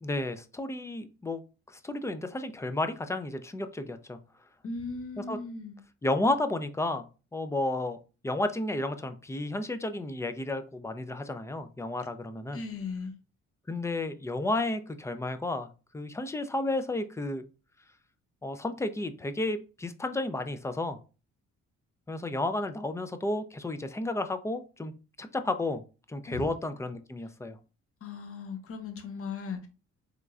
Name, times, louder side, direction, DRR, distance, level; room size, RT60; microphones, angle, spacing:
voice 1, 0.0-1.4 1.7-4.2 5.2-5.4 6.0-8.0 8.2-12.6 13.7-17.4 18.4-21.0 22.1-24.9 25.2-25.8 26.1-27.6, left 2 dB, 10° left, 0.3 m, -32 dB
voice 2, 4.6-5.8 12.5-13.2 26.3-26.5 28.0-29.7, left 4 dB, 50° left, 0.9 m, -37 dB
3.5 x 3.1 x 2.3 m
cardioid pair, 90°, 30 cm